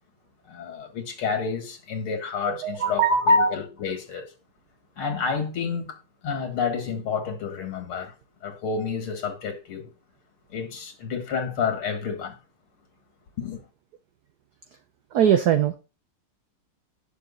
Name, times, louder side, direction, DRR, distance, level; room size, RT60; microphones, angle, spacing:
voice 1, 0.5-4.3 5.0-8.1 8.4-9.9 10.5-12.4 13.4-13.6, left 4 dB, 85° left, 2.7 m, -28 dB
voice 2, 2.5-3.1 3.4-3.5 15.1-15.7, right 9 dB, 65° right, 1.1 m, -21 dB
10.0 x 6.7 x 4.1 m
omnidirectional pair, 2.3 m